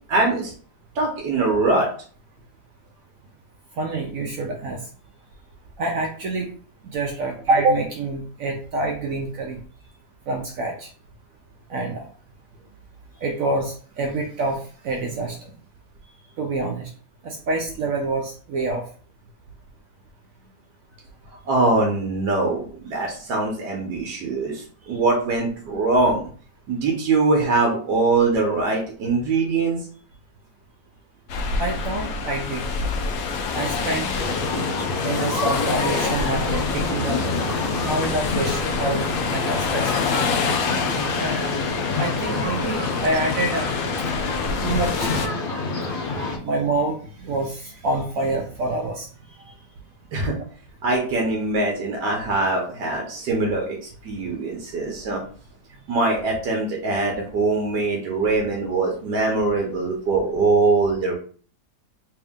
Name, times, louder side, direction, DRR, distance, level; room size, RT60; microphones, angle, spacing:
voice 1, 0.1-0.5 0.9-1.9 21.4-26.2 26.7-29.8 50.1-50.3 50.8-53.8 54.0-55.2 55.9-61.1, right 3 dB, 90° right, 0 dB, 1.5 m, -22 dB
voice 2, 3.8-4.8 5.8-6.5 6.8-9.6 10.3-10.9 11.7-12.1 13.2-15.4 16.4-16.9 17.2-18.8 31.6-32.6 33.5-34.1 35.0-37.2 37.8-39.0 39.3-39.9 41.2-41.4 42.0-43.6 44.6-45.3 46.2-49.1, right 2 dB, 65° right, 2 dB, 0.9 m, -26 dB
sound 1, 31.3-45.3, left 5 dB, 70° left, 0.9 m, -28 dB
sound 2, 34.1-46.4, left 3 dB, 50° left, 0.6 m, -27 dB
3.4 x 2.7 x 3.5 m, 0.44 s
omnidirectional pair, 1.8 m